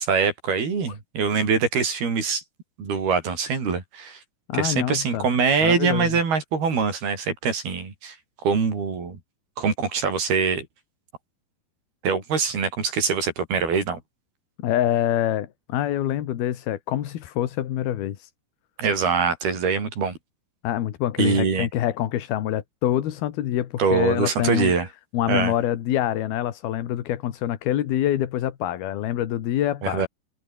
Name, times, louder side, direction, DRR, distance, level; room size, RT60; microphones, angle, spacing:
voice 1, 0.0-2.4 2.8-4.2 4.5-8.2 8.4-9.2 9.6-10.7 12.0-14.0 18.8-20.2 21.2-21.7 23.8-24.9 25.3-25.5 29.8-30.1, right 5 dB, 85° right, 7.6 m, -23 dB
voice 2, 4.5-5.3 5.6-6.2 14.6-18.3 20.6-24.7 25.1-30.1, left 12 dB, 80° left, 3.6 m, -25 dB
omnidirectional pair, 4.3 m